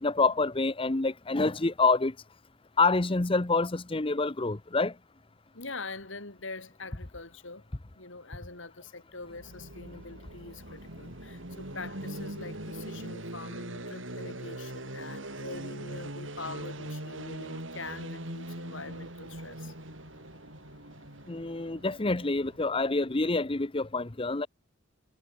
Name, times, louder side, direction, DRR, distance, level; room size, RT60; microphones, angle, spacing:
voice 1, 0.0-2.1 2.8-4.9 21.3-24.5, left 3 dB, 25° left, 0.8 m, -27 dB
voice 2, 5.5-7.6 7.9-19.7, left 3 dB, 70° left, 3.9 m, -44 dB
sound 1, 9.2-23.1, right 1 dB, 70° right, 6.4 m, -41 dB
head